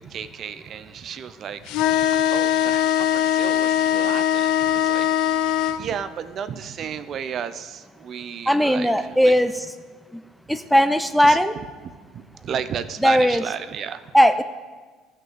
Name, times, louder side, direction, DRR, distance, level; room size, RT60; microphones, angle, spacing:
voice 1, 0.0-2.0 2.3-5.4 5.8-9.4 11.2-11.4 11.8-14.0, right 8 dB, 45° right, 13 dB, 0.6 m, -33 dB
sound 1, 1.7-5.8, left 10 dB, 70° left, 0.6 m, -21 dB
voice 2, 8.5-9.5 10.5-11.5 13.0-13.4 14.1-14.4, equal, ahead, 10 dB, 0.5 m, -17 dB
13.0 x 6.0 x 7.4 m, 1.4 s
cardioid pair, 125°, 0 cm